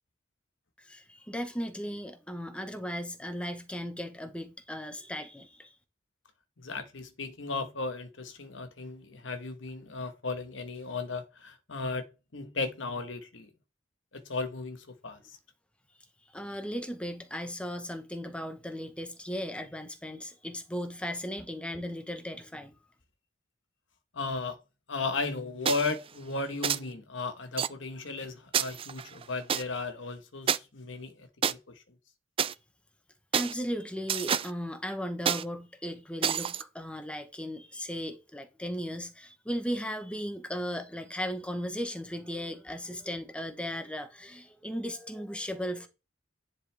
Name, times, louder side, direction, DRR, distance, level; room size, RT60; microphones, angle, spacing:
voice 1, 0.8-5.7 16.3-22.7 33.3-45.9, equal, 5° left, 1.1 m, -36 dB
voice 2, 6.6-12.1 12.3-13.5 14.1-15.4 24.1-24.6 24.9-31.8, left 3 dB, 85° left, 1.3 m, -35 dB
sound 1, 25.7-26.0 26.6-26.8 27.6-27.7 28.5-29.6 30.5-30.6 31.4-31.5 32.4-32.5 33.3-33.5 34.1-34.5 35.3-35.4 36.2-36.6, right 8 dB, 30° right, 0.3 m, -28 dB
10.0 x 4.0 x 3.4 m
head